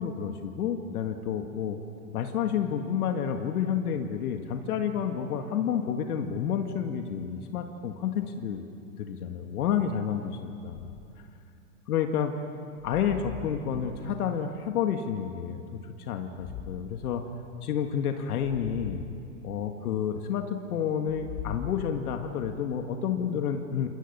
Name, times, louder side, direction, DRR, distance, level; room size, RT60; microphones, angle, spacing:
voice 1, 0.0-1.8 2.1-8.7 9.0-10.9 11.9-12.3 12.8-17.2 17.6-19.0 19.4-23.9, left 8 dB, 65° left, 5 dB, 2.1 m, -30 dB
sound 1, 10.7-11.2 12.8-14.3 16.3-17.0 18.4-19.2 21.0-22.4, left 9 dB, 40° left, 2.2 m, -42 dB
28.5 x 28.0 x 7.0 m, 2.7 s
hypercardioid pair, 125°, 48 cm